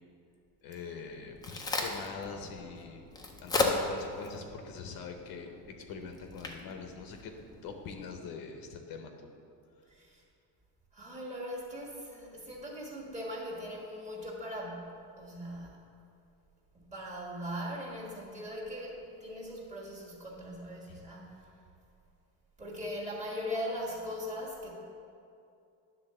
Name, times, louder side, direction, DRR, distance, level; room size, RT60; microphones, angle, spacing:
voice 1, 0.6-3.0 3.4-5.5 5.9-7.3 7.6-9.1 20.9-21.0, left 5 dB, 55° left, 4 dB, 0.7 m, -43 dB
Crack, 1.0-7.9, left 3 dB, 10° left, 0.4 m, -37 dB
voice 2, 9.9-10.2 10.9-15.8 16.7-21.5 22.6-24.7, equal, 15° right, -4 dB, 1.4 m, -40 dB
10.0 x 3.9 x 6.6 m, 2.6 s
cardioid pair, 170°, 43 cm